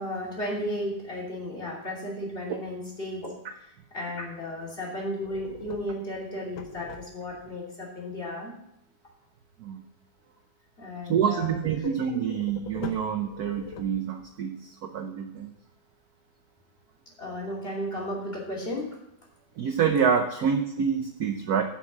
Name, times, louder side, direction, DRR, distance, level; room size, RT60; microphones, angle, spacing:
voice 1, 0.0-3.3 3.9-8.6 10.8-11.6 17.2-19.0, left 1 dB, 25° left, -3 dB, 3.1 m, -34 dB
sound 1, 5.2-7.5 12.1-14.4, left 6 dB, 70° left, 1.6 m, -43 dB
voice 2, 11.1-15.5 19.6-21.6, right 7 dB, 60° right, 6 dB, 1.0 m, -27 dB
10.0 x 6.1 x 7.3 m, 0.78 s
omnidirectional pair, 2.2 m